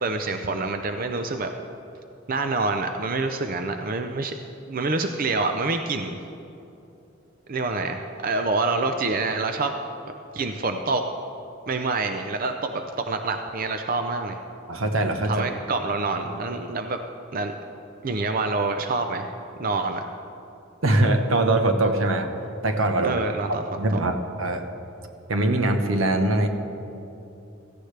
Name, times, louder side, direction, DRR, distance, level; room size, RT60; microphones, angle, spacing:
voice 1, 0.0-1.5 2.3-4.3 4.7-6.2 7.5-9.7 10.3-11.0 11.7-14.4 15.3-17.0 17.3-17.5 18.0-19.3 19.6-20.0 23.0-23.6, right 3 dB, 45° right, 6 dB, 0.6 m, -26 dB
voice 2, 14.7-15.3 20.8-22.3 22.6-24.7 25.3-26.5, right 2 dB, 80° right, 6 dB, 1.1 m, -22 dB
16.5 x 15.0 x 3.3 m, 2.8 s
head